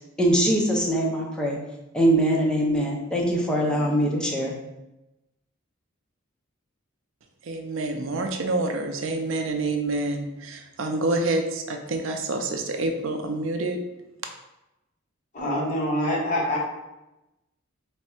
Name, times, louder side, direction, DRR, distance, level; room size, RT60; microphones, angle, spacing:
voice 1, 0.2-1.6 1.9-4.5, right 1 dB, 5° left, -3 dB, 0.5 m, -22 dB
voice 2, 7.4-13.8, right 2 dB, 70° right, 4 dB, 0.5 m, -27 dB
voice 3, 15.3-16.6, equal, 40° left, -4 dB, 1.0 m, -25 dB
3.5 x 2.1 x 4.3 m, 0.96 s
head